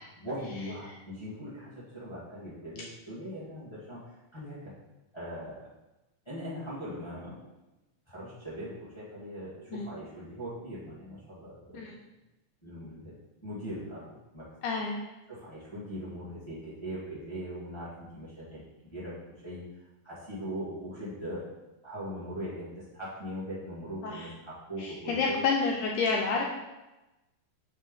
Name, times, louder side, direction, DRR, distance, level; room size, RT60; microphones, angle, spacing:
voice 1, 0.2-4.7 5.1-5.7 6.2-7.4 8.1-11.9 12.6-13.1 13.4-14.5 15.3-18.6 18.9-19.2 19.4-19.6 20.0-21.5 21.8-25.4, equal, 30° left, -10 dB, 0.5 m, -40 dB
voice 2, 14.6-15.0 24.0-24.3 24.8-26.4, left 4 dB, 80° left, 0 dB, 1.8 m, -29 dB
4.7 x 4.4 x 5.3 m, 1.0 s
omnidirectional pair, 4.0 m